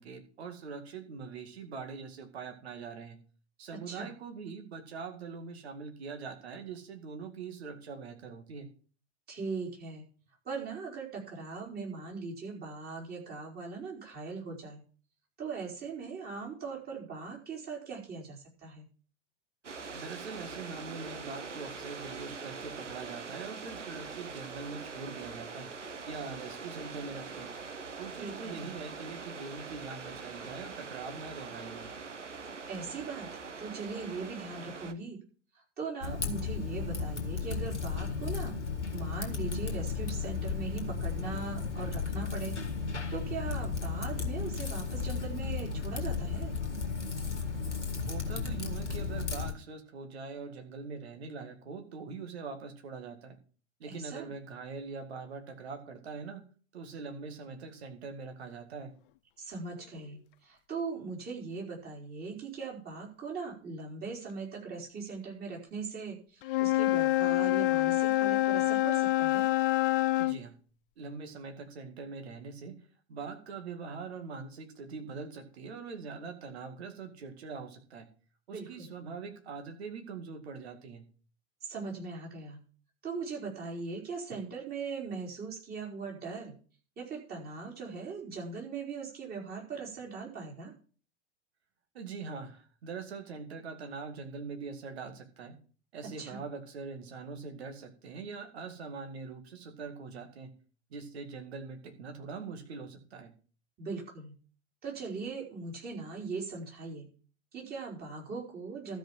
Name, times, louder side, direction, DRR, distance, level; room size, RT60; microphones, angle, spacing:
voice 1, 0.0-3.2 3.6-8.7 19.9-25.7 26.1-27.5 28.0-31.9 48.1-53.4 53.8-56.4 56.7-58.9 70.2-70.6 71.0-78.1 78.5-81.0 91.9-95.6 95.9-100.5 100.9-103.3, right 5 dB, 65° right, 6 dB, 2.1 m, -43 dB
voice 2, 9.3-10.0 10.4-14.8 15.4-18.9 28.2-28.7 32.7-33.3 33.6-35.2 35.5-38.5 38.9-42.5 43.1-46.5 53.9-54.3 59.4-69.5 78.5-78.9 81.6-82.6 83.0-86.5 87.0-90.7 96.2-96.4 103.8-104.3 104.8-107.1 107.5-109.0, right 4 dB, 25° right, -1 dB, 4.4 m, -40 dB
sound 1, 19.6-34.9, right 4 dB, 80° right, 1.0 m, -43 dB
Typing, 36.0-49.5, left 5 dB, 80° left, 1.8 m, -34 dB
Wind instrument woodwind instrument, 66.4-70.4, left 17 dB, 50° left, 0.6 m, -26 dB
13.0 x 5.2 x 7.3 m, 0.40 s
figure-of-eight pair, 85°, 35 cm